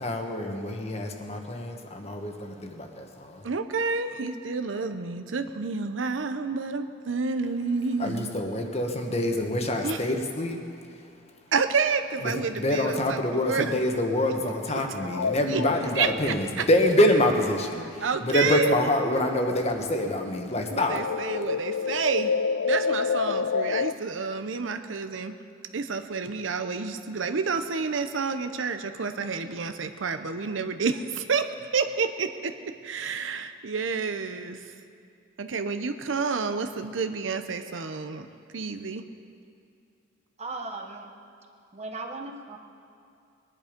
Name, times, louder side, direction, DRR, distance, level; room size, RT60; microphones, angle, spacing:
voice 1, 0.0-3.4 8.0-10.6 12.2-21.1, left 1 dB, 35° left, 4 dB, 1.3 m, -26 dB
voice 2, 3.4-8.4 9.8-10.0 11.5-13.8 14.4-15.6 15.9-16.6 18.0-18.7 20.7-22.3 22.6-25.3 25.7-32.5 32.8-34.7 35.4-38.3 38.5-39.0, right 5 dB, 80° right, 8 dB, 0.7 m, -29 dB
sound 1, 15.0-19.1 19.4-23.9, left 5 dB, 85° left, 0.4 m, -30 dB
voice 3, 40.4-41.1 41.7-42.6, right 3 dB, 35° right, 4 dB, 1.2 m, -37 dB
20.5 x 11.0 x 5.2 m, 2.5 s
head